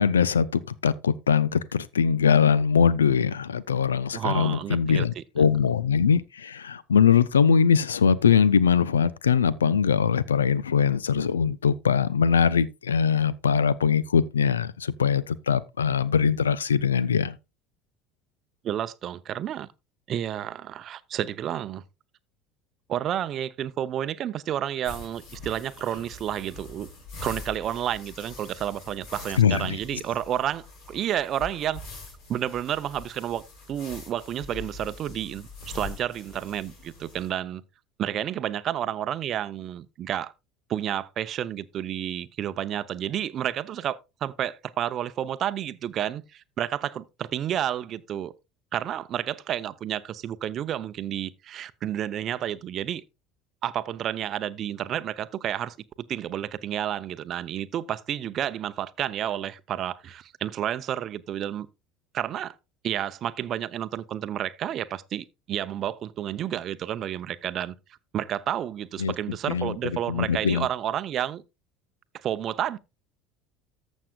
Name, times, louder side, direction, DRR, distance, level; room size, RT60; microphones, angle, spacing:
voice 1, 0.0-17.3 29.4-29.8 69.0-69.1 69.5-69.7 70.1-70.7, left 7 dB, 85° left, 0.5 m, -22 dB
voice 2, 4.1-5.4 18.6-19.7 20.1-21.8 22.9-26.9 27.2-31.8 32.3-37.6 38.0-40.3 40.7-48.3 48.7-53.0 53.6-61.7 62.1-62.5 62.8-67.7 68.1-71.4 72.2-72.8, right 10 dB, 45° right, 0.6 m, -30 dB
sound 1, 24.8-37.3, left 3 dB, 60° left, 5.5 m, -43 dB
14.5 x 6.3 x 2.3 m
hypercardioid pair, 70°, 0 cm